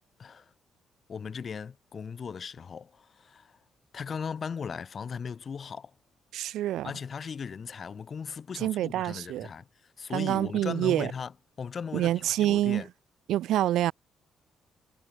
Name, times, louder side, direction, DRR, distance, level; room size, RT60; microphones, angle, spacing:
voice 1, 0.2-0.5 1.1-3.6 3.9-5.9 6.8-9.7 10.0-12.9, left 6 dB, 45° left, 5.9 m, -38 dB
voice 2, 6.3-6.9 8.6-9.5 10.1-11.1 11.9-12.8 13.3-13.9, right 13 dB, 80° right, 0.4 m, -27 dB
cardioid pair, 90°, 0 cm